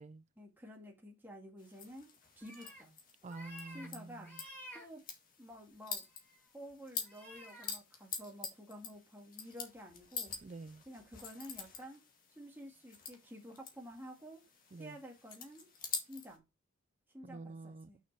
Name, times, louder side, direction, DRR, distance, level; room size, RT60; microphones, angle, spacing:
voice 1, 0.4-2.1 2.4-2.9 3.7-4.3 4.7-5.0 5.4-6.0 6.5-10.4 10.9-12.0 12.3-14.4 14.8-15.7 16.1-16.4 17.1-18.0, equal, 10° right, 2.0 m, -51 dB
sound 1, 1.6-16.4, left 6 dB, 40° left, 1.8 m, -47 dB
sound 2, 2.4-2.8 3.2-3.9 4.2-4.8 5.5-5.7 6.1-6.4 7.0-7.7, equal, 10° left, 2.7 m, -52 dB
voice 2, 3.2-4.3 10.4-10.8 14.7-15.0 17.2-17.9, right 3 dB, 30° right, 0.3 m, -48 dB
6.4 x 6.3 x 4.6 m
head